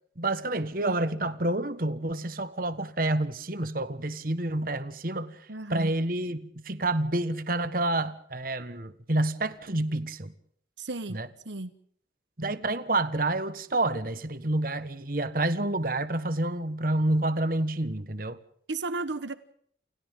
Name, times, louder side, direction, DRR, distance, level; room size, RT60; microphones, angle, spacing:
voice 1, 0.2-5.4 5.7-10.3 11.1-11.3 12.4-18.4, right 2 dB, 50° right, 1.5 m, -28 dB
voice 2, 5.5-5.9 10.8-11.7 18.7-19.4, right 3 dB, 75° right, 1.3 m, -34 dB
30.0 x 29.5 x 3.8 m
head